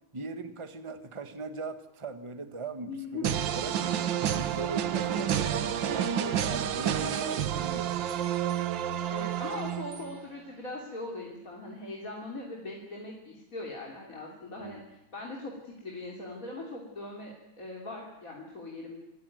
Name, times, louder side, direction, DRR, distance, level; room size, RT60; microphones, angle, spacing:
voice 1, 0.1-3.9 4.2-8.0 14.6-14.9, right 3 dB, 15° right, 9 dB, 1.4 m, -39 dB
voice 2, 2.9-3.2 3.7-4.1 5.2-5.3 7.0-7.3 9.1-19.0, left 2 dB, 40° left, -2 dB, 3.6 m, -41 dB
sound 1, 3.2-10.2, right 10 dB, 70° right, 1.7 m, -30 dB
26.5 x 15.0 x 9.3 m, 0.95 s
omnidirectional pair, 2.2 m